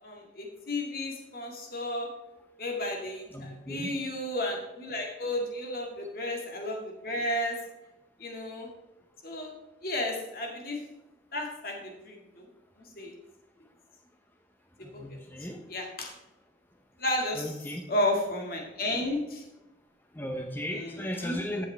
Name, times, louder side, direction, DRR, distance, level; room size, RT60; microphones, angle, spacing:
voice 1, 0.0-2.1 2.6-7.6 8.2-8.7 9.2-9.5 9.8-10.8 11.3-12.4 13.0-13.1 15.7-16.1 17.0-17.5 17.9-19.4 20.7-21.4, left 1 dB, 50° left, 1 dB, 2.0 m, -33 dB
voice 2, 3.3-3.9 14.8-15.6 17.4-17.8 20.1-21.6, equal, 10° left, 3 dB, 0.8 m, -36 dB
14.5 x 7.6 x 3.4 m, 0.98 s
head